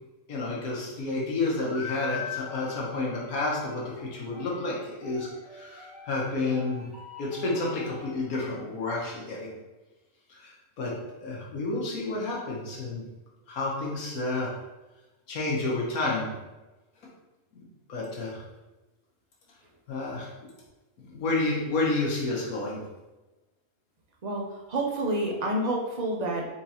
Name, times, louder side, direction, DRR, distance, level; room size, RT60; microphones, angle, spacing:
voice 1, 0.3-6.9 7.2-9.5 10.3-10.9 11.2-13.0 13.5-14.5 15.3-16.3 17.5-17.6 17.9-18.4 19.9-20.3 21.0-22.8, left 2 dB, 85° left, -4 dB, 1.5 m, -30 dB
sound 1, 1.6-8.6, left 5 dB, 5° right, 0.7 m, -43 dB
voice 2, 24.2-26.4, right 1 dB, 50° right, -1 dB, 0.5 m, -29 dB
4.5 x 3.6 x 2.9 m, 1.1 s
omnidirectional pair, 1.5 m